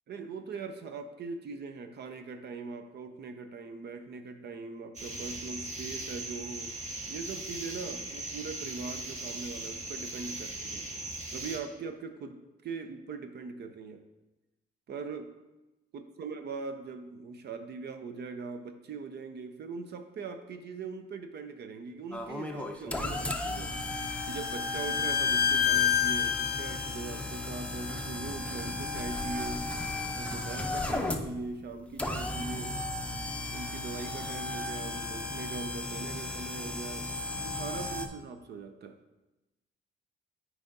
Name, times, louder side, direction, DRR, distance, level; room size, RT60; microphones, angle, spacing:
voice 1, 0.1-6.7 7.1-10.9 11.3-14.0 14.9-15.3 15.9-23.8 24.3-29.7 30.1-32.8 33.5-37.1 37.4-39.0, right 4 dB, 55° right, 8 dB, 0.6 m, -41 dB
sound 1, 4.9-11.6, right 2 dB, 35° right, 1.4 m, -39 dB
sound 2, 22.1-38.1, left 2 dB, 5° left, 0.5 m, -35 dB
Bowed string instrument, 23.2-27.0, left 9 dB, 50° left, 0.5 m, -29 dB
8.7 x 4.7 x 2.7 m, 1.0 s
cardioid pair, 90°, 20 cm